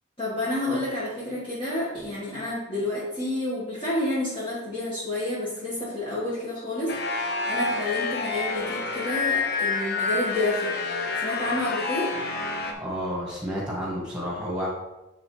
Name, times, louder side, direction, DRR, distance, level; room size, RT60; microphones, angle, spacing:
voice 1, 0.2-10.7 11.2-12.1, left 1 dB, 25° left, -10 dB, 1.6 m, -29 dB
sound 1, 6.9-12.7, left 4 dB, 50° left, 0.7 m, -28 dB
voice 2, 12.8-14.7, equal, 5° right, -4 dB, 1.9 m, -30 dB
9.2 x 3.9 x 3.2 m, 1.0 s
head